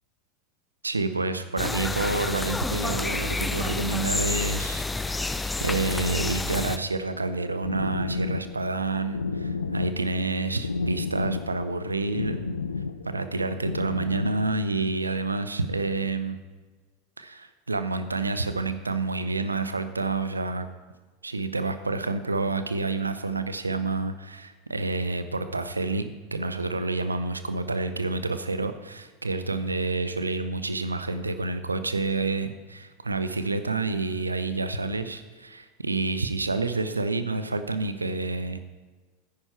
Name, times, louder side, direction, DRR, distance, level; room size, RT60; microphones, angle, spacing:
voice 1, 0.8-12.4 13.0-16.4 17.2-20.7 21.2-38.6, right 3 dB, 85° right, 11 dB, 0.7 m, -29 dB
sound 1, 1.6-6.8, left 3 dB, 10° left, 0.6 m, -29 dB
sound 2, 7.1-14.3, left 4 dB, 80° left, 0.6 m, -32 dB
13.5 x 10.0 x 4.5 m, 1.3 s
figure-of-eight pair, 80°, 0 cm